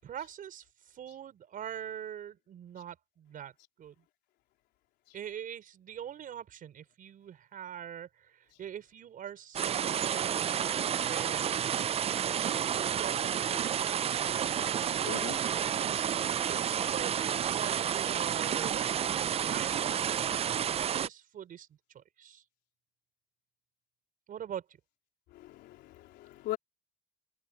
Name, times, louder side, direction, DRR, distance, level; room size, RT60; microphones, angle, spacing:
voice 1, 0.0-3.5 3.8-3.9 5.1-11.9 12.7-15.3 16.4-19.2 19.5-21.7 21.9-22.4 24.3-24.6, right 9 dB, 55° right, 5.5 m, -43 dB
sound 1, 9.5-21.1, right 9 dB, 35° right, 0.4 m, -30 dB
voice 2, 15.1-15.4 15.7-16.0 25.3-26.6, left 15 dB, 85° left, 4.0 m, -40 dB
open air
cardioid pair, 110°, 17 cm